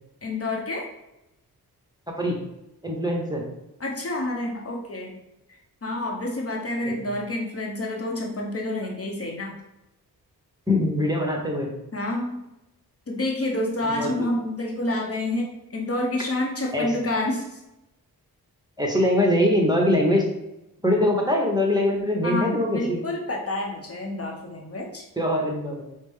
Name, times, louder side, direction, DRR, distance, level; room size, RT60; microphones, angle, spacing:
voice 1, 0.2-0.9 3.8-5.1 5.8-9.6 11.9-12.4 13.1-17.6 22.2-25.0, left 1 dB, 40° left, 0 dB, 0.8 m, -28 dB
voice 2, 2.8-3.4 6.9-7.0 10.7-11.7 13.8-14.3 16.7-16.9 18.8-20.3 20.8-23.0 25.2-25.9, left 1 dB, 10° right, -1 dB, 0.9 m, -23 dB
5.0 x 2.1 x 3.5 m, 0.90 s
cardioid pair, 55°, 38 cm